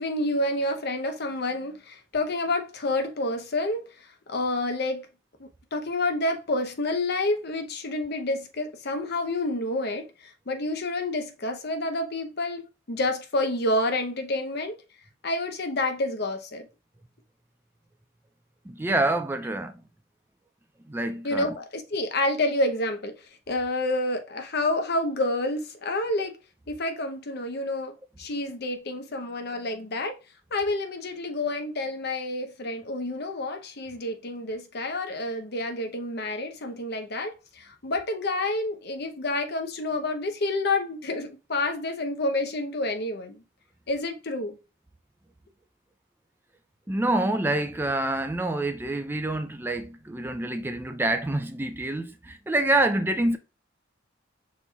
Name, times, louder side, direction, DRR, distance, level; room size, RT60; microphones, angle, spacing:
voice 1, 0.0-3.9 4.3-5.1 5.4-10.1 10.5-14.8 15.2-16.7 21.2-23.1 23.5-26.4 26.7-30.1 30.5-43.4 43.9-44.6, left 2 dB, 55° left, 0.8 m, -29 dB
voice 2, 18.7-19.7 20.9-21.6 46.9-53.4, right 2 dB, 10° right, 0.3 m, -27 dB
5.3 x 4.2 x 2.3 m
head